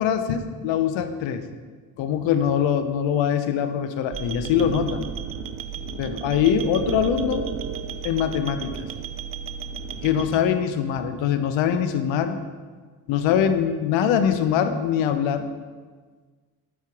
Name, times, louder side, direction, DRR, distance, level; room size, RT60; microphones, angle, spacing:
voice 1, 0.0-1.4 2.0-5.0 6.0-7.4 8.0-8.8 10.0-12.4 13.1-15.5, left 8 dB, 75° left, 9 dB, 0.6 m, -23 dB
sound 1, 4.1-10.4, right 7 dB, 30° right, 0.4 m, -33 dB
5.6 x 4.6 x 4.6 m, 1.5 s
supercardioid pair, 50°, 46 cm